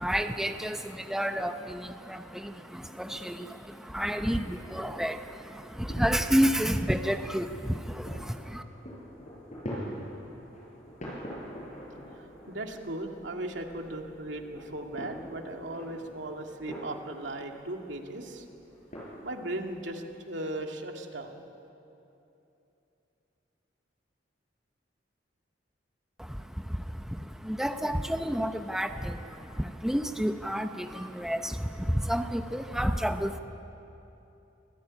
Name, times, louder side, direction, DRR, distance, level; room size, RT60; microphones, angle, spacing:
voice 1, 0.0-8.6 26.2-33.4, equal, 5° right, 6 dB, 0.8 m, -30 dB
sound 1, 4.6-20.2, equal, 40° left, 7.3 m, -45 dB
voice 2, 12.1-18.4 19.2-21.4, right 1 dB, 85° right, 2 dB, 2.4 m, -37 dB
26.0 x 17.0 x 9.9 m, 2.9 s
head